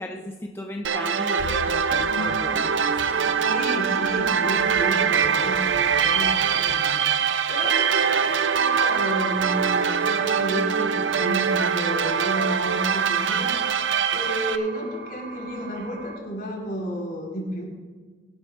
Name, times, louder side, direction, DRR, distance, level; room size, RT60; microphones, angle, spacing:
voice 1, 0.0-3.5, left 1 dB, 15° left, 2 dB, 0.6 m, -36 dB
sound 1, 0.8-14.6, right 7 dB, 80° right, 0.6 m, -23 dB
sound 2, 1.4-6.9, left 5 dB, 85° left, 0.4 m, -39 dB
voice 2, 3.4-13.7 14.1-17.7, equal, 55° left, -3 dB, 4.1 m, -32 dB
sound 3, 4.8-16.2, right 5 dB, 60° right, 1.0 m, -40 dB
22.0 x 11.5 x 2.5 m, 1.4 s
head